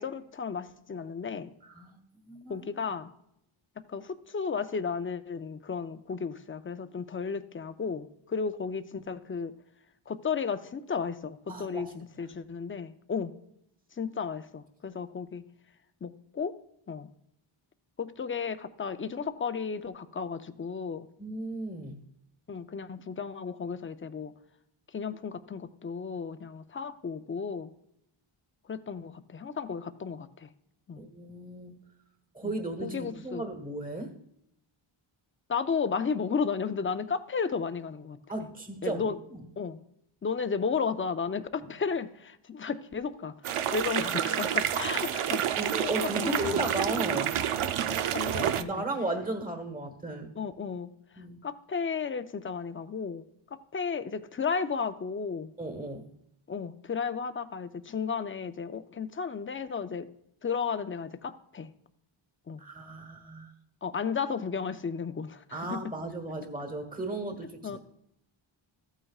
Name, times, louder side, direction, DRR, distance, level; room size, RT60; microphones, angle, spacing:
voice 1, 0.0-1.5 2.5-3.1 3.9-9.5 10.1-13.3 14.0-15.4 16.0-16.5 16.9-17.1 18.0-21.1 22.5-24.3 24.9-27.7 28.7-30.5 30.9-31.0 32.8-33.4 35.5-38.2 38.8-39.2 39.6-39.8 40.2-45.5 45.8-45.9 46.2-46.7 47.9-48.8 50.4-50.9 51.4-55.5 56.5-60.1 60.4-61.7 62.5-62.6 63.8-65.8 67.6-67.8, left 5 dB, 25° left, 11 dB, 0.5 m, -34 dB
voice 2, 1.6-2.0 2.3-2.7 11.5-11.9 21.2-22.0 31.0-31.7 32.3-34.1 38.3-39.4 45.6-47.3 48.5-50.3 51.2-51.4 55.6-56.1 62.6-63.5 65.5-67.8, right 2 dB, 15° right, 6 dB, 1.3 m, -35 dB
sound 1, 43.4-48.6, right 10 dB, 90° right, 0.6 m, -29 dB
14.0 x 8.9 x 2.4 m, 0.76 s
wide cardioid pair, 115°, 49 cm